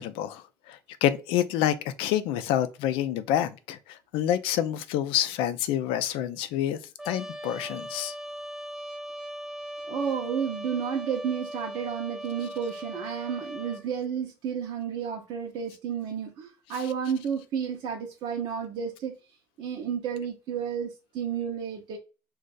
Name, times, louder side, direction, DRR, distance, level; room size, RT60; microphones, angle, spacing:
voice 1, 0.0-6.8 7.1-8.1, left 11 dB, 80° left, 0.4 m, -28 dB
Trumpet, 7.0-13.9, equal, 5° right, 0.5 m, -39 dB
voice 2, 9.9-19.2 19.6-22.0, right 7 dB, 65° right, 0.7 m, -31 dB
2.6 x 2.4 x 3.8 m
supercardioid pair, 85°, 9 cm